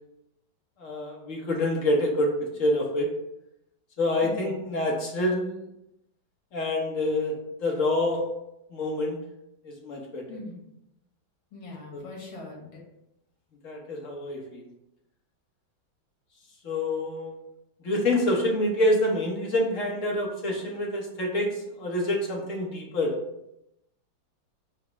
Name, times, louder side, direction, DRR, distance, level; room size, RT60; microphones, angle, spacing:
voice 1, 0.8-2.3 2.6-3.1 4.0-5.6 6.5-7.3 7.6-8.2 8.7-9.2 9.6-10.2 11.9-12.0 13.6-14.6 16.6-17.3 17.8-23.1, left 1 dB, 50° left, -1 dB, 1.0 m, -27 dB
voice 2, 10.3-10.6 11.5-12.8, left 2 dB, 90° left, -2 dB, 2.2 m, -41 dB
4.9 x 2.1 x 4.6 m, 0.84 s
omnidirectional pair, 2.2 m